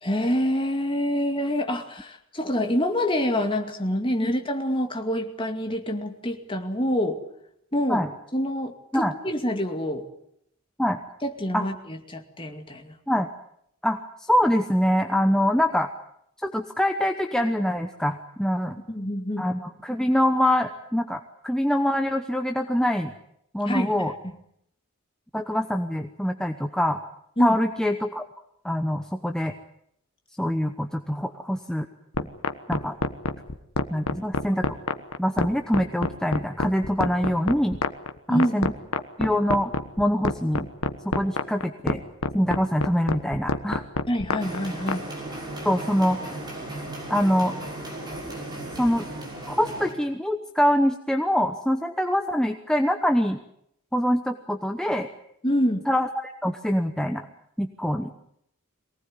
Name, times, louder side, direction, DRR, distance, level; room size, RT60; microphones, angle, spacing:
voice 1, 0.0-7.2 7.7-8.1 8.3-10.1 11.2-13.0 18.9-19.5 23.7-23.9 27.4-27.6 38.3-38.6 44.1-45.1 55.4-55.9, equal, 25° left, 5 dB, 2.3 m, -26 dB
voice 2, 13.8-15.9 16.4-18.7 19.4-23.1 23.5-24.1 25.3-27.0 27.4-28.2 28.6-29.5 30.4-31.9 32.7-33.0 33.9-34.8 35.2-37.8 38.3-38.7 39.2-39.7 40.0-40.7 41.0-42.0 42.3-43.8 45.6-46.2 47.1-47.5 48.8-49.0 49.5-53.4 53.9-55.1 55.9-57.2 57.6-58.1, equal, 5° left, 5 dB, 0.9 m, -24 dB
sound 1, 32.1-45.0, left 3 dB, 85° left, 1.4 m, -26 dB
sound 2, 44.4-49.9, right 1 dB, 20° right, 6.1 m, -36 dB
23.5 x 18.5 x 9.6 m, 0.74 s
head